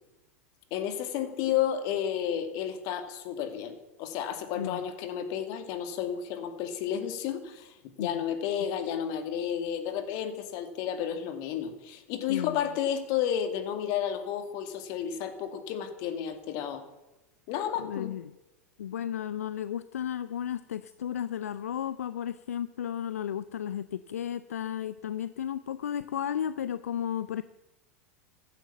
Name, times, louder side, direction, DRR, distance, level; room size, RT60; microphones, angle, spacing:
voice 1, 0.7-16.8 17.5-18.1, left 9 dB, 50° left, 8 dB, 2.4 m, -32 dB
voice 2, 12.3-12.7 17.8-18.3 18.8-27.4, left 9 dB, 75° left, 15 dB, 0.5 m, -34 dB
15.5 x 13.0 x 7.2 m, 1.0 s
figure-of-eight pair, 85°, 8 cm